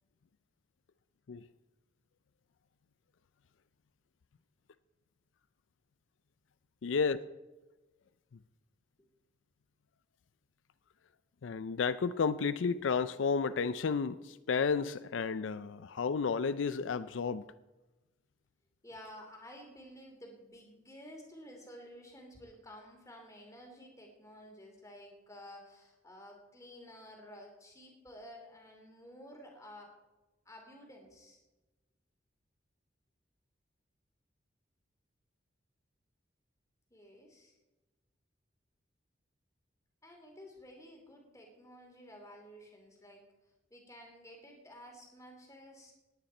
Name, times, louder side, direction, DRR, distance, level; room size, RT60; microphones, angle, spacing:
voice 1, 6.8-7.2 11.4-17.4, left 5 dB, 80° left, 0.4 m, -32 dB
voice 2, 18.8-29.9 30.5-31.4 36.9-37.5 40.0-43.3 43.7-45.9, equal, 15° left, 2.6 m, -52 dB
18.5 x 9.2 x 4.3 m
head